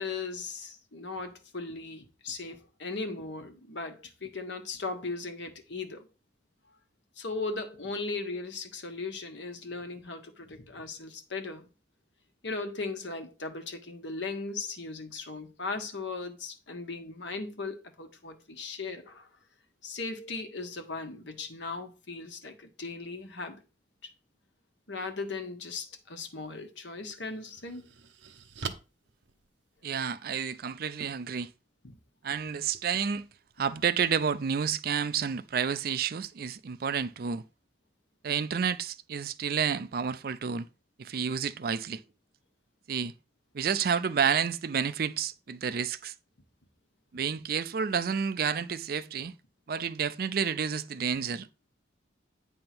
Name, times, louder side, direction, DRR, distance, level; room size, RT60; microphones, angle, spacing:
voice 1, 0.0-6.1 7.2-11.7 12.4-19.3 19.8-23.6 24.9-27.8 31.8-32.0, left 3 dB, 80° left, 1.4 m, -38 dB
sound 1, 26.4-26.5 27.1-30.1, right 5 dB, 80° right, 0.8 m, -43 dB
voice 2, 29.8-31.5 32.2-33.3 33.6-37.4 38.2-40.7 41.0-42.0 42.9-43.1 43.5-46.1 47.1-49.3 49.7-51.5, right 7 dB, 55° right, 0.4 m, -30 dB
8.7 x 3.6 x 6.0 m
head